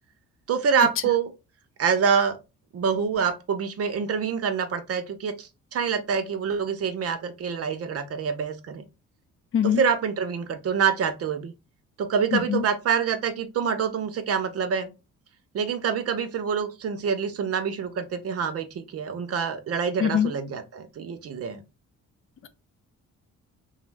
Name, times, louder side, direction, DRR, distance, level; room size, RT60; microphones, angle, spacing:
voice 1, 0.5-1.3 1.8-2.4 2.7-8.8 9.6-11.5 12.0-14.9 15.5-21.6, right 6 dB, 50° right, 0.6 m, -26 dB
voice 2, 12.3-12.6 20.0-20.3, left 9 dB, 45° left, 0.4 m, -22 dB
2.6 x 2.0 x 3.2 m
cardioid pair, 90°, 30 cm